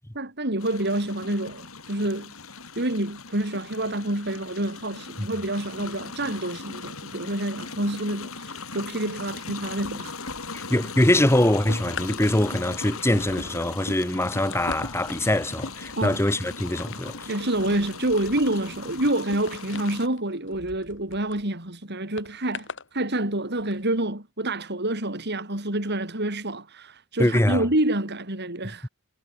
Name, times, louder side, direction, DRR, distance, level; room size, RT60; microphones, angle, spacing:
voice 1, 0.1-2.3 2.8-10.2 16.0-16.2 17.3-28.9, right 1 dB, 50° right, 5.7 m, -28 dB
sound 1, 0.6-20.1, left 4 dB, 75° left, 7.2 m, -39 dB
sound 2, 9.7-10.7 11.1-21.4 22.2-22.9 23.6-23.7, left 3 dB, 60° left, 7.5 m, -40 dB
voice 2, 10.5-17.1 27.2-27.6, left 1 dB, 10° left, 1.6 m, -23 dB
head